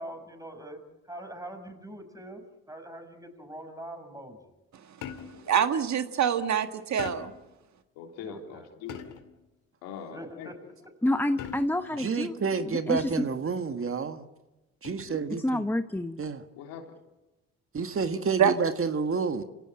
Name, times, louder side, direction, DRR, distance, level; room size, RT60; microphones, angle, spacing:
voice 1, 0.0-4.4 8.2-8.7 10.1-10.6, right 1 dB, 10° right, 6 dB, 6.1 m, -43 dB
sound 1, 5.0-5.5 7.0-7.5 8.9-9.4 11.4-11.9 13.0-13.4 14.8-15.2, left 8 dB, 70° left, 2.6 m, -41 dB
voice 2, 5.4-7.3 18.4-18.5, right 8 dB, 60° right, 8 dB, 1.7 m, -25 dB
voice 3, 8.0-9.0 9.8-10.5 12.2-12.3 16.6-17.0, left 6 dB, 90° left, 2 dB, 3.7 m, -42 dB
voice 4, 11.0-12.4 12.6-13.1 15.4-16.2, left 1 dB, 5° left, 9 dB, 1.1 m, -28 dB
voice 5, 12.0-14.2 14.8-15.6 16.2-16.4 17.7-19.4, right 5 dB, 40° right, 8 dB, 1.7 m, -29 dB
27.0 x 17.0 x 8.9 m, 1.0 s
supercardioid pair, 65°, 32 cm